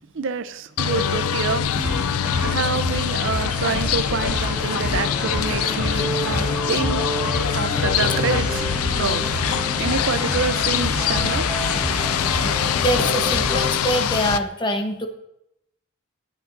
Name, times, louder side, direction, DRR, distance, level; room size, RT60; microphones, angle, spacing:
voice 1, 0.1-1.7 2.0-7.0 7.5-8.7 9.0-11.5, right 5 dB, 60° right, 0.5 m, -27 dB
sound 1, 0.8-14.4, left 8 dB, 80° left, 0.4 m, -24 dB
sound 2, 1.8-13.8, right 1 dB, 5° right, 1.3 m, -29 dB
voice 2, 12.4-15.1, equal, 20° left, 1.0 m, -24 dB
20.5 x 7.8 x 2.6 m
head